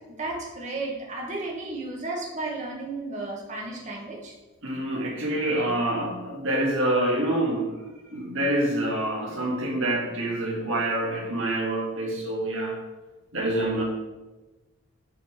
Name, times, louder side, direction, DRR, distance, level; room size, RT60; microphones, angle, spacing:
voice 1, 0.2-4.3, right 2 dB, 30° right, -2 dB, 1.3 m, -33 dB
voice 2, 4.6-7.7 8.1-12.8 13.3-13.8, right 1 dB, 55° right, -1 dB, 1.8 m, -26 dB
8.0 x 4.0 x 4.8 m, 1.1 s
head